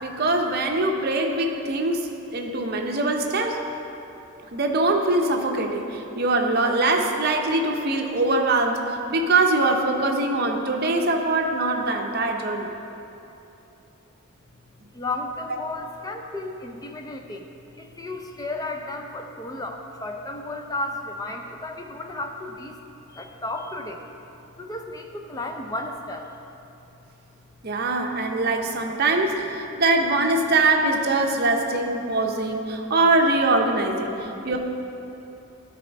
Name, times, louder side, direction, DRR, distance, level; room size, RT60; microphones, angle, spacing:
voice 1, 0.0-3.6 4.5-12.7 27.6-34.6, right 2 dB, 45° right, 3 dB, 0.7 m, -23 dB
voice 2, 14.9-17.5 17.8-22.8 23.1-24.0 24.6-26.3, left 2 dB, 15° left, 3 dB, 0.5 m, -33 dB
12.0 x 4.2 x 5.2 m, 2.9 s
head